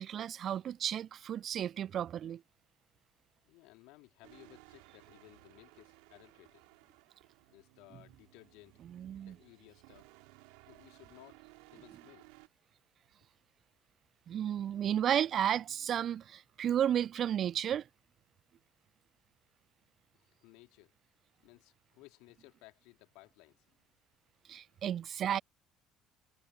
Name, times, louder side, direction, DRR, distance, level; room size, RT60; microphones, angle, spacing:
voice 1, 0.0-2.4 8.9-9.3 14.3-17.9 24.5-25.4, right 10 dB, 45° right, 0.3 m, -33 dB
voice 2, 3.4-6.6 7.5-8.8 9.2-10.1 10.7-11.4 11.7-12.3 20.1-20.9 21.4-23.8 24.4-24.8, left 24 dB, 60° left, 3.1 m, -59 dB
sound 1, 4.2-12.5, right 37 dB, 65° right, 3.7 m, -60 dB
figure-of-eight pair, 55°, 0 cm